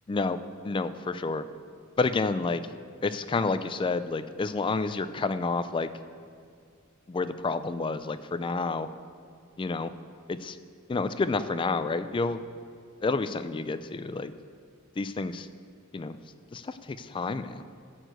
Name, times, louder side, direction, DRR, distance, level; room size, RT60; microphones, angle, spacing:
voice 1, 0.1-0.4 0.6-1.4 2.0-2.6 3.0-5.9 7.1-8.9 9.6-9.9 10.3-10.6 10.9-12.4 13.0-14.3 15.0-15.5 15.9-16.1 16.5-17.6, left 3 dB, 25° left, 12 dB, 0.3 m, -29 dB
12.0 x 4.6 x 7.9 m, 2.2 s
head